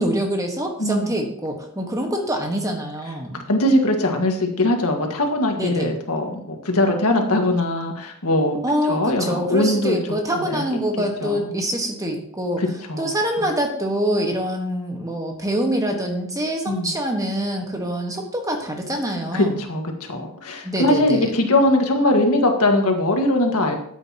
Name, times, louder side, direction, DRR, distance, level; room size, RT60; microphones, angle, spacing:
voice 1, 0.0-3.4 5.6-5.9 8.6-12.6 13.0-19.6 20.6-21.3, equal, 15° right, 2 dB, 1.4 m, -25 dB
voice 2, 3.5-8.6 8.9-10.0 10.4-10.6 11.2-11.5 12.6-13.1 16.7-16.9 19.3-23.7, left 1 dB, 85° left, 3 dB, 1.7 m, -21 dB
12.5 x 8.4 x 2.9 m, 0.66 s
head